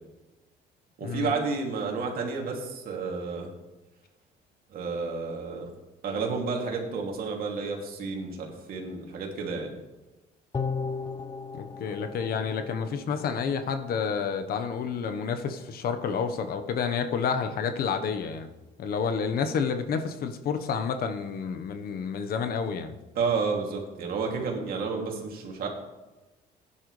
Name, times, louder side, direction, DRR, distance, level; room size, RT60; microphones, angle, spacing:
voice 1, 1.0-3.5 4.7-5.7 6.0-9.8 23.1-25.7, right 4 dB, 60° right, 1 dB, 2.7 m, -31 dB
sound 1, 10.5-13.9 14.2-14.3, left 5 dB, 25° left, 0.8 m, -36 dB
voice 2, 11.5-18.5 18.8-22.9, left 6 dB, 65° left, 8 dB, 1.2 m, -29 dB
16.0 x 10.0 x 3.3 m, 1.1 s
cardioid pair, 110°, 17 cm